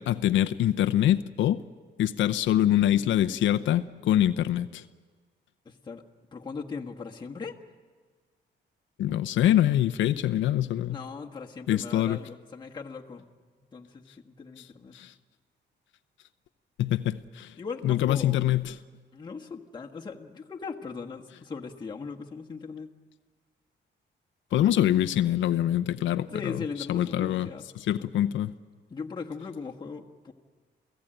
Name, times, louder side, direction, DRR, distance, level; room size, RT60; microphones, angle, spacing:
voice 1, 0.0-1.6 2.0-4.8 9.0-11.0 11.7-12.2 14.6-14.7 14.9-15.1 16.8-17.5 17.8-18.8 24.5-26.6 26.9-27.5 27.8-28.5, left 12 dB, 85° left, 10 dB, 0.7 m, -24 dB
voice 2, 5.6-6.0 6.3-7.5 10.9-13.2 13.7-15.0 17.6-18.4 19.1-22.9 24.5-24.7 26.3-27.6 28.0-28.1 28.9-30.3, left 5 dB, 25° left, 0 dB, 1.5 m, -39 dB
28.5 x 16.5 x 9.0 m, 1.5 s
cardioid pair, 140°, 19 cm